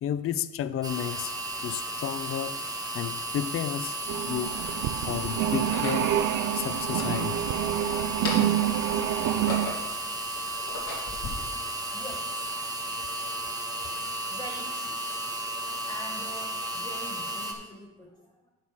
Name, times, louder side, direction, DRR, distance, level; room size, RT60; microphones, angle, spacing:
voice 1, 0.0-1.4 1.6-4.0 4.3-4.6 5.0-6.1 6.5-7.4 11.8-12.0 12.7-13.1 13.4-14.3, left 10 dB, 45° left, 15 dB, 0.5 m, -33 dB
sound 1, 0.8-17.5, right 1 dB, 10° right, 1.6 m, -34 dB
sound 2, 4.0-4.8 5.6-6.1 6.8-7.8 8.1-8.7 9.2-10.0 10.5-11.3, left 2 dB, 80° left, 2.4 m, -37 dB
sound 3, 4.1-9.7, right 12 dB, 90° right, 0.5 m, -27 dB
voice 2, 11.9-12.4 14.3-15.0 15.9-18.5, equal, 10° left, -4 dB, 1.3 m, -44 dB
10.5 x 4.2 x 6.1 m, 1.1 s
cardioid pair, 90°, 30 cm